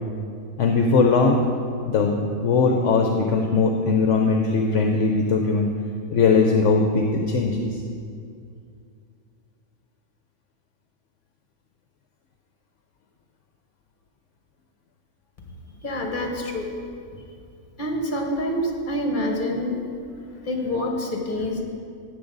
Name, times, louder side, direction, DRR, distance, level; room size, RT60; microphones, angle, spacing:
voice 1, 0.6-1.4 1.9-5.7 6.1-7.8, left 4 dB, 65° left, 2 dB, 1.0 m, -20 dB
voice 2, 15.8-16.7 17.8-19.8 20.4-21.6, left 1 dB, 35° left, 1 dB, 1.6 m, -26 dB
14.0 x 9.2 x 4.0 m, 2.4 s
omnidirectional pair, 1.5 m